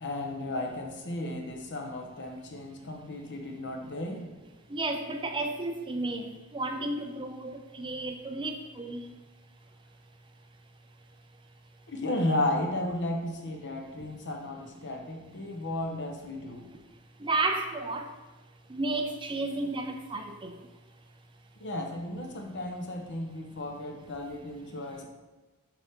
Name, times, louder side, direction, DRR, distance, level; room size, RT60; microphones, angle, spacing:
voice 1, 0.0-4.2 11.9-16.7 21.6-25.1, left 1 dB, 55° left, 2 dB, 1.0 m, -34 dB
voice 2, 4.7-9.1 17.2-18.1 18.7-20.5, right 2 dB, 20° right, 5 dB, 0.5 m, -32 dB
7.0 x 5.7 x 3.7 m, 1.2 s
head